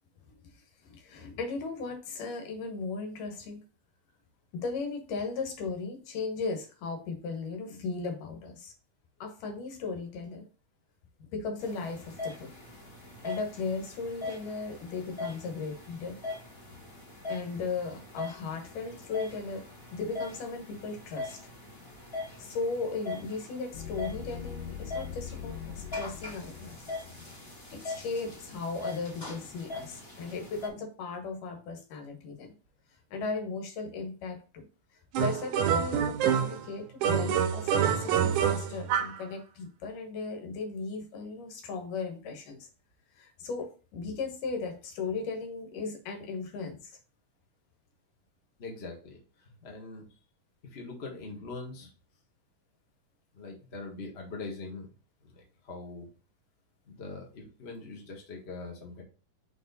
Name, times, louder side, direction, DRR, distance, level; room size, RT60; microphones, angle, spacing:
voice 1, 0.3-3.6 4.5-8.7 9.2-10.4 11.3-12.5 13.2-16.2 17.3-19.6 19.9-21.5 22.4-26.8 27.7-32.5 33.1-34.7 35.2-42.7 43.2-47.0, left 4 dB, 70° left, 4 dB, 2.7 m, -36 dB
sound 1, 11.6-30.7, left 3 dB, 25° left, 1.4 m, -42 dB
sound 2, 23.7-28.3, left 9 dB, 90° left, 2.4 m, -42 dB
sound 3, 35.1-36.6 37.0-39.2, right 8 dB, 75° right, 2.0 m, -27 dB
voice 2, 48.6-49.2 49.4-50.2 50.6-51.9 53.3-54.9 55.2-56.0 56.9-59.0, left 3 dB, 40° left, 0 dB, 0.9 m, -42 dB
5.9 x 4.6 x 4.0 m, 0.36 s
omnidirectional pair, 3.9 m